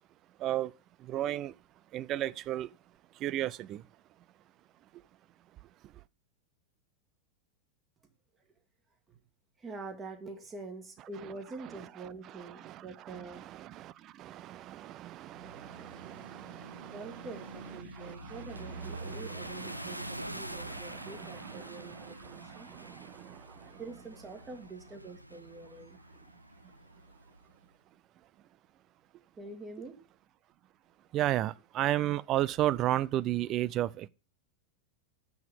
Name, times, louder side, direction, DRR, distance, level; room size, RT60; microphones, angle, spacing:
voice 1, 0.4-0.7 1.0-1.6 1.9-2.7 3.1-3.9 11.2-11.3 11.6-23.8 26.6-26.7 31.1-34.1, right 13 dB, 35° right, 0.4 m, -35 dB
voice 2, 9.6-13.6 16.9-22.7 23.8-26.0 29.4-29.9, right 3 dB, 20° right, 1.6 m, -45 dB
sound 1, 15.3-27.4, right 1 dB, 90° right, 0.5 m, -46 dB
7.4 x 5.9 x 6.8 m
figure-of-eight pair, 90°, 0 cm